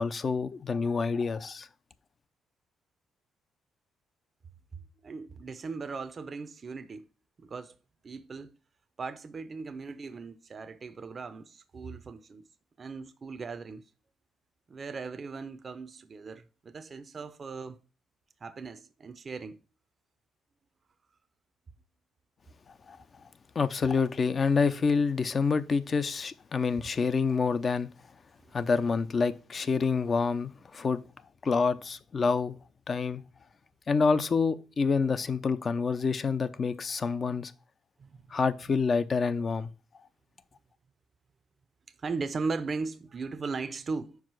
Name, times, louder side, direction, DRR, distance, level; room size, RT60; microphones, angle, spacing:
voice 1, 0.0-1.7 22.9-23.0 23.5-27.9 28.5-31.0 31.4-32.6 32.9-33.2 33.9-37.5 38.3-39.7, left 5 dB, 40° left, 0.6 m, -27 dB
voice 2, 5.0-7.1 7.4-7.7 8.0-8.5 9.0-12.5 12.8-13.8 14.7-17.8 18.4-19.6 38.0-38.4 42.0-44.2, right 4 dB, 40° right, 0.6 m, -38 dB
4.8 x 4.8 x 6.1 m
cardioid pair, 90°, 0 cm